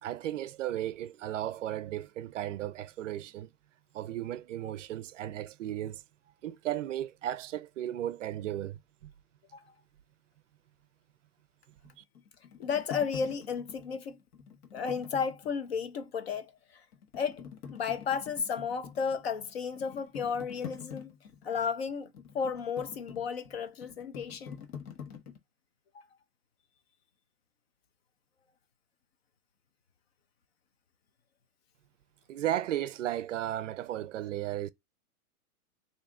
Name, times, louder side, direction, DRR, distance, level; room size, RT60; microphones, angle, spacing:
voice 1, 0.0-3.5 3.9-6.0 6.4-9.1 12.0-12.1 32.3-34.7, right 12 dB, 60° right, 0.5 m, -35 dB
sound 1, 11.8-15.9 16.3-16.4 16.9-25.4, left 7 dB, 85° left, 1.3 m, -46 dB
voice 2, 12.6-14.2 14.7-16.8 17.1-17.4 17.7-21.2 21.4-24.7 25.9-26.0, left 6 dB, 45° left, 0.4 m, -33 dB
3.4 x 2.7 x 3.6 m
hypercardioid pair, 165°, 45 cm